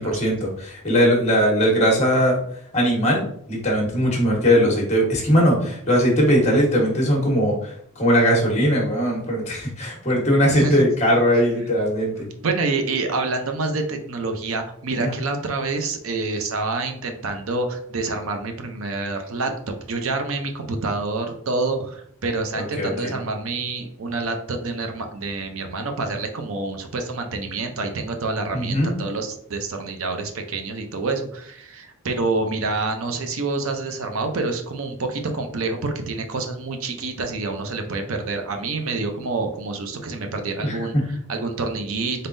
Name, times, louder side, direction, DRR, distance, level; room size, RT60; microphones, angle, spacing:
voice 1, 0.0-2.4 2.7-12.3 14.9-15.1 22.5-23.1 28.5-29.0 40.6-41.1, equal, 30° left, -1 dB, 1.2 m, -20 dB
voice 2, 10.5-10.9 12.2-19.5 19.9-42.3, right 3 dB, 70° right, 5 dB, 0.6 m, -27 dB
3.9 x 3.7 x 2.6 m, 0.67 s
head